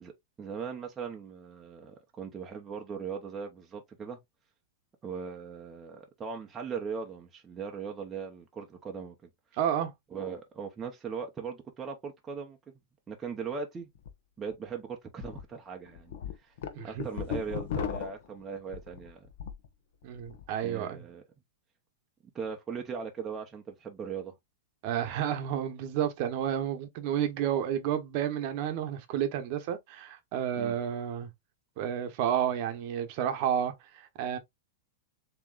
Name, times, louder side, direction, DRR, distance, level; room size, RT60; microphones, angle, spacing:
voice 1, 0.0-4.2 5.0-9.1 10.1-12.6 13.1-13.9 14.4-16.5 16.8-19.3 20.6-21.2 22.3-24.3 30.6-30.8, right 6 dB, 15° right, 0.7 m, -39 dB
voice 2, 9.6-9.9 16.7-17.1 20.0-21.0 24.8-31.3 31.8-34.4, right 9 dB, 40° right, 0.9 m, -31 dB
sound 1, 14.0-14.1 14.5-14.6 15.2-15.4 15.9-19.7 20.0-20.5, left 8 dB, 60° left, 1.0 m, -36 dB
7.2 x 3.0 x 2.4 m
supercardioid pair, 165°, 0 cm